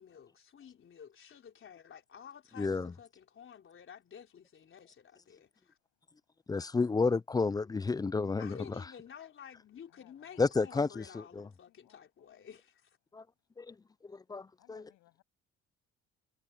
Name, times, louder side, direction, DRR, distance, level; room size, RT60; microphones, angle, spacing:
voice 1, 0.0-5.8 8.4-13.0, left 8 dB, 45° left, 3.9 m, -52 dB
voice 2, 2.6-2.9 6.5-8.6 10.4-11.0 11.4-11.5 13.1-13.2 13.6-13.7 14.3-14.8, left 4 dB, 15° left, 0.4 m, -30 dB
voice 3, 9.9-12.0 12.3-12.5 14.6-15.2, left 17 dB, 90° left, 7.3 m, -65 dB
cardioid pair, 115°, 29 cm